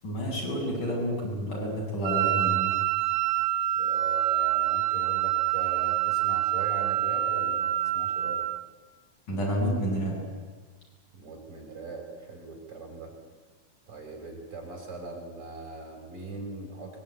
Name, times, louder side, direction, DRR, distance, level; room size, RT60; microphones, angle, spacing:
voice 1, 0.0-2.7 9.3-10.2, equal, 80° left, -2 dB, 9.4 m, -29 dB
Wind instrument woodwind instrument, 2.0-8.6, right 13 dB, 80° right, 2.6 m, -26 dB
voice 2, 3.7-8.5 11.1-13.1 13.9-17.0, right 3 dB, 45° right, 1 dB, 7.3 m, -40 dB
24.5 x 22.0 x 9.5 m, 1.4 s
omnidirectional pair, 3.5 m